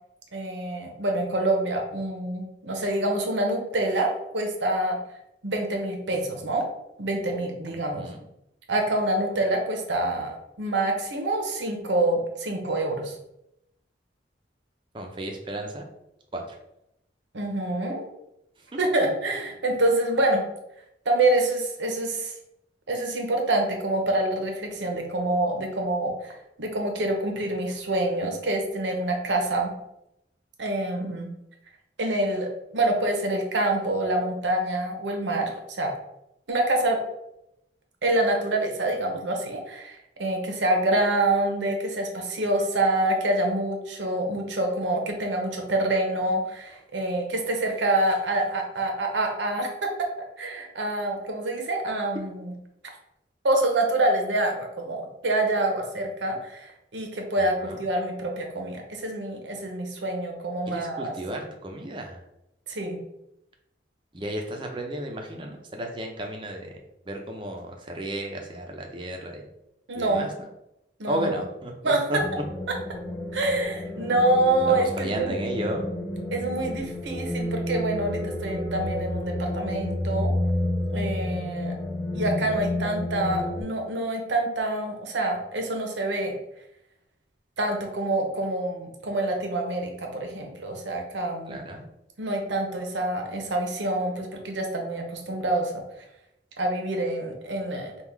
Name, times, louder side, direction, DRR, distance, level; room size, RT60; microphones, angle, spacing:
voice 1, 0.3-5.0 5.4-6.7 7.0-8.1 8.7-13.1 17.3-18.1 18.8-20.4 21.1-22.3 22.9-26.3 26.6-29.7 30.6-31.3 32.0-35.9 36.5-37.0 38.0-39.9 40.2-50.1 50.4-52.5 53.4-61.1 62.7-63.0 69.9-70.3 71.0-71.4 71.8-72.0 72.7-72.8 73.3-75.4 76.3-80.3 80.9-81.7 82.1-86.3 87.6-91.6 92.2-95.7 96.6-97.9, right 1 dB, 85° right, 2 dB, 0.8 m, -26 dB
voice 2, 7.7-8.2 14.9-15.9 16.3-16.6 57.4-57.8 60.7-62.2 64.1-66.7 67.1-69.4 69.9-70.5 71.1-72.2 74.7-75.9 91.5-91.8, right 1 dB, 25° right, 2 dB, 0.6 m, -33 dB
sound 1, 72.2-83.6, left 1 dB, 15° left, 0.8 m, -30 dB
3.6 x 2.4 x 4.5 m, 0.84 s
head